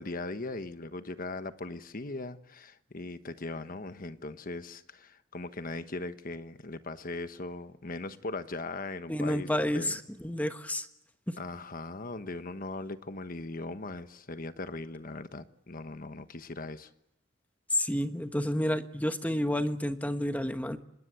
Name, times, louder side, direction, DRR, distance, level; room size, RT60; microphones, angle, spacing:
voice 1, 0.0-10.0 11.4-16.9, left 2 dB, 45° left, 10 dB, 1.3 m, -39 dB
voice 2, 9.1-10.9 11.3-11.4 17.7-20.8, left 1 dB, 10° left, 8 dB, 1.3 m, -30 dB
26.5 x 20.5 x 8.2 m, 0.83 s
head